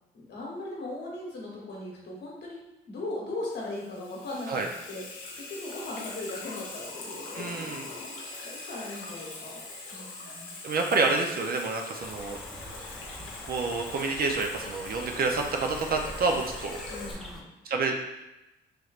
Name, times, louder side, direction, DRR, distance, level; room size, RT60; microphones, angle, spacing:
voice 1, 0.1-2.6 2.9-5.0 5.4-8.1 8.4-9.6 9.9-10.5 16.9-17.5, left 2 dB, 60° left, -3 dB, 1.1 m, -38 dB
Water tap faucet / Sink (filling or washing), 3.5-17.1, left 3 dB, 90° left, 0.7 m, -42 dB
voice 2, 7.3-7.9 10.6-12.4 13.5-16.8 17.6-17.9, right 3 dB, 50° right, 3 dB, 0.5 m, -28 dB
sound 1, 12.0-17.4, equal, ahead, 0.4 m, -44 dB
3.2 x 3.1 x 2.4 m, 0.97 s
cardioid pair, 90°, 20 cm